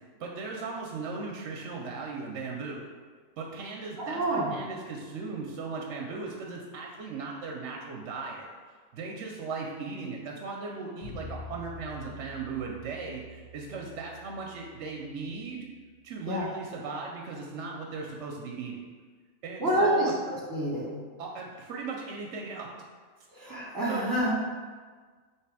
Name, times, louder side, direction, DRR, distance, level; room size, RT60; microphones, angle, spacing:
voice 1, 0.2-2.9 3.4-8.5 8.9-15.7 16.0-18.8 19.4-20.1 21.2-22.7 23.9-24.1, right 4 dB, 70° right, -1 dB, 0.8 m, -37 dB
voice 2, 4.0-4.5 16.3-16.4 19.6-21.0 23.3-24.3, right 1 dB, 15° right, -6 dB, 1.0 m, -27 dB
sound 1, 11.0-16.0, left 2 dB, 35° left, 1.6 m, -47 dB
3.3 x 3.0 x 4.7 m, 1.5 s
omnidirectional pair, 1.4 m